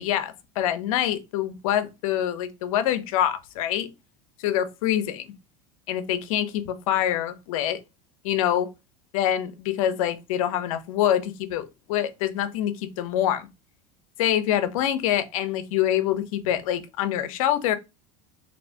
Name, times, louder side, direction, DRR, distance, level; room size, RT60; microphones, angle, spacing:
voice 1, 0.0-3.9 4.4-5.3 5.9-7.8 8.2-8.7 9.1-13.5 14.2-17.8, left 11 dB, 80° left, 0.5 m, -25 dB
3.3 x 2.7 x 2.6 m
supercardioid pair, 100°, 17 cm